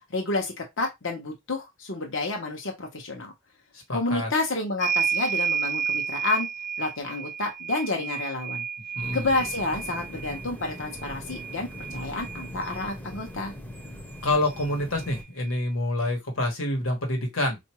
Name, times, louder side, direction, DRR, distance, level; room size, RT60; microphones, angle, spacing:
voice 1, 0.1-3.3 3.9-6.5 6.8-8.6 9.1-13.5, left 2 dB, 65° left, 1.0 m, -30 dB
voice 2, 3.9-4.3 9.0-9.3 14.2-17.6, left 1 dB, 90° left, 1.3 m, -27 dB
sound 1, 4.8-12.9 14.2-14.3 14.6-15.6, right 7 dB, 40° right, 0.3 m, -32 dB
sound 2, 9.0-15.2, left 1 dB, 10° left, 0.6 m, -41 dB
4.4 x 2.6 x 3.0 m
head